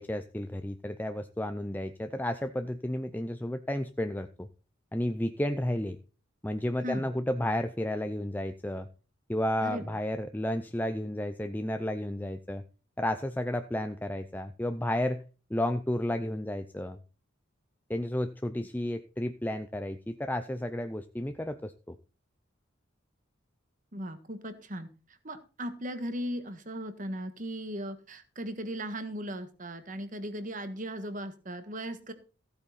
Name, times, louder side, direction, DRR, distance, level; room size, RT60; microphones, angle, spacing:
voice 1, 0.0-4.5 4.9-6.0 6.4-8.9 9.3-12.6 13.0-15.2 15.5-17.0 17.9-22.0, left 1 dB, 10° left, 8 dB, 0.5 m, -32 dB
voice 2, 9.6-10.0 23.9-24.9 25.2-32.1, equal, 40° right, 10 dB, 1.6 m, -37 dB
15.5 x 8.8 x 4.2 m, 0.36 s
head